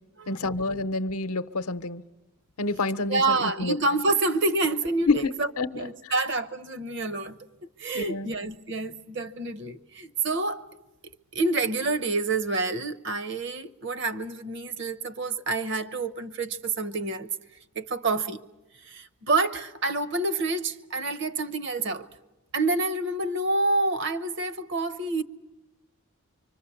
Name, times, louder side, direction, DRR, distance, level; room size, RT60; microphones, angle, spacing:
voice 1, 0.3-2.0 2.6-3.2 3.6-3.7 5.1-5.2 5.6-5.7 7.9-8.3, left 3 dB, 80° left, 0.7 m, -27 dB
voice 2, 3.1-7.4 7.8-10.7 11.3-17.3 17.7-18.4 18.8-22.1 22.5-25.2, right 3 dB, 55° right, 0.8 m, -28 dB
25.0 x 25.0 x 7.0 m
head